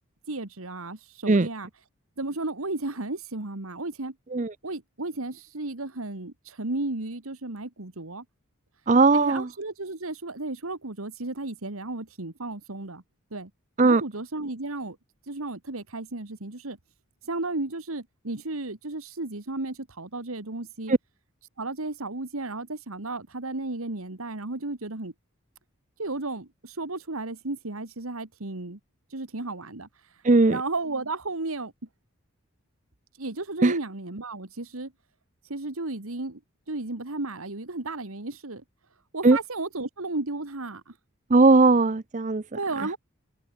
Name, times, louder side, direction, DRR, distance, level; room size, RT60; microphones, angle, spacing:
voice 1, 0.3-1.7 2.2-4.1 4.6-8.2 9.1-13.0 13.3-13.5 13.8-15.0 15.3-16.8 17.3-20.9 21.6-25.1 26.0-28.8 29.1-29.9 30.5-31.7 33.2-34.9 35.5-36.4 36.7-38.6 39.1-40.9 42.5-43.0, right 2 dB, 85° right, 2.0 m, -33 dB
voice 2, 8.9-9.4 13.8-14.0 30.2-30.6 33.6-33.7 39.2-39.4 41.3-42.4, right 3 dB, 35° right, 0.6 m, -18 dB
head